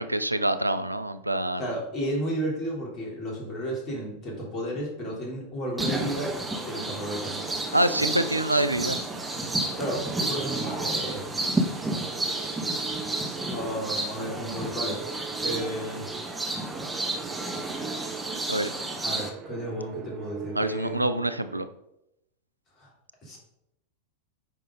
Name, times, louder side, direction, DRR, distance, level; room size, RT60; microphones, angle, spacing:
voice 1, 0.0-1.6 7.7-9.0 18.5-18.8 20.5-21.7, right 1 dB, 85° right, 11 dB, 0.4 m, -26 dB
voice 2, 1.6-6.3 6.6-7.4 9.8-11.2 13.5-15.0 15.4-16.1 19.0-21.1 22.8-22.9 23.2-23.4, equal, 30° left, -2 dB, 3.3 m, -33 dB
sound 1, 5.8-19.3, right 2 dB, 10° right, 1.3 m, -31 dB
sound 2, 7.2-21.7, right 7 dB, 30° right, 0.6 m, -41 dB
9.2 x 5.4 x 3.8 m, 0.83 s
figure-of-eight pair, 90°, 0 cm